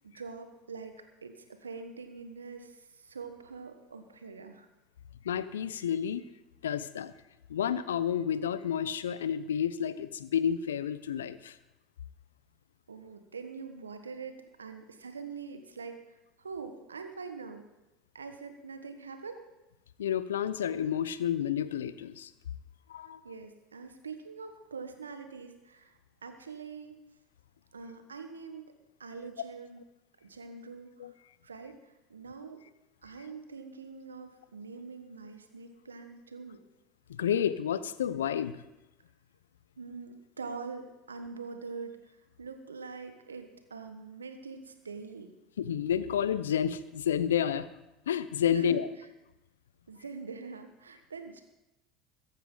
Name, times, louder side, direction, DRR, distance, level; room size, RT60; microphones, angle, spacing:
voice 1, 0.0-4.7 12.9-17.6 18.1-19.4 23.2-27.0 27.7-28.6 29.0-29.8 30.2-31.1 31.4-32.6 33.0-36.6 39.8-45.3 48.5-48.8 49.9-51.4, right 5 dB, 85° right, 7 dB, 1.4 m, -44 dB
voice 2, 5.2-6.2 6.6-7.1 7.5-11.6 20.0-22.3 22.9-23.2 31.0-31.1 37.1-38.6 45.6-47.7 48.1-48.9, left 9 dB, 80° left, 15 dB, 0.7 m, -30 dB
22.0 x 9.9 x 3.9 m, 0.96 s
hypercardioid pair, 70°, 0 cm